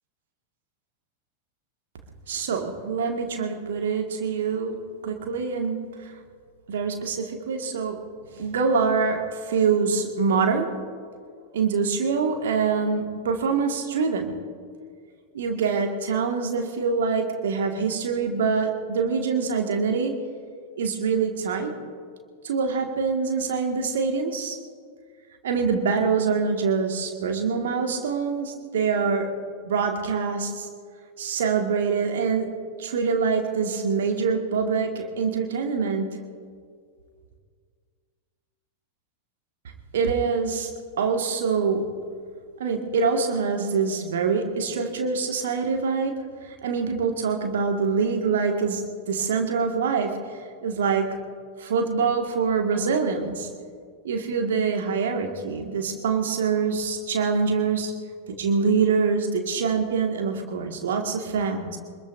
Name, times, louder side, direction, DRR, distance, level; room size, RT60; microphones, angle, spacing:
voice 1, 2.3-5.8 6.7-8.0 8.3-10.7 11.5-14.3 15.3-20.1 20.8-21.7 22.4-24.6 25.4-29.3 29.7-30.7 31.2-32.5 32.8-36.1 39.9-40.7 41.0-41.8 42.6-46.2 46.6-48.8 49.1-50.1 50.6-51.1 51.6-53.5 54.0-57.9 58.4-61.8, right 5 dB, 60° right, 3 dB, 1.9 m, -25 dB
25.5 x 21.0 x 2.7 m, 2.1 s
figure-of-eight pair, 90°, 0 cm